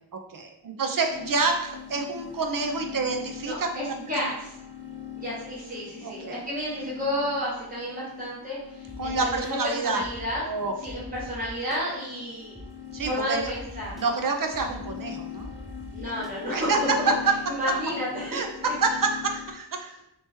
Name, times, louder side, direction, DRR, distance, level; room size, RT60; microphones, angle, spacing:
voice 1, 0.1-4.0 4.2-4.3 6.0-6.4 9.0-10.0 10.4-10.7 12.9-13.5 14.0-15.5 16.5-16.8 18.3-20.0, right 4 dB, 55° right, 3 dB, 0.6 m, -28 dB
sound 1, 1.1-19.5, left 9 dB, 30° left, 1.1 m, -42 dB
voice 2, 3.4-4.5 5.2-10.4 10.8-12.6 13.1-14.2 15.9-17.1 17.5-18.4, equal, 20° right, -8 dB, 1.1 m, -31 dB
sound 2, 8.9-9.5 10.0-10.4 10.9-11.8 12.5-12.6 13.0-13.1 13.4-14.0 14.5-14.9 15.4-16.3, left 1 dB, ahead, 0.4 m, -42 dB
3.0 x 3.0 x 3.3 m, 0.80 s
wide cardioid pair, 70°, 41 cm